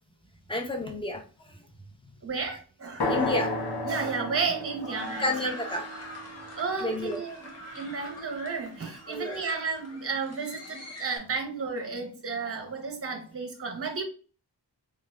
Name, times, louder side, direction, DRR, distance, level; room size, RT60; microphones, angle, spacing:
voice 1, 0.5-1.5 3.1-3.5 5.2-5.9 6.8-7.2 9.0-9.4, left 1 dB, 10° left, 1 dB, 0.8 m, -30 dB
voice 2, 2.2-3.1 3.8-5.3 6.5-7.4 7.7-14.0, right 5 dB, 30° right, 4 dB, 0.8 m, -32 dB
sound 1, 3.0-6.9, left 1 dB, 60° left, 0.9 m, -33 dB
sound 2, 3.6-11.2, left 2 dB, 35° left, 1.0 m, -44 dB
3.9 x 2.4 x 2.3 m, 0.38 s
cardioid pair, 50°, 43 cm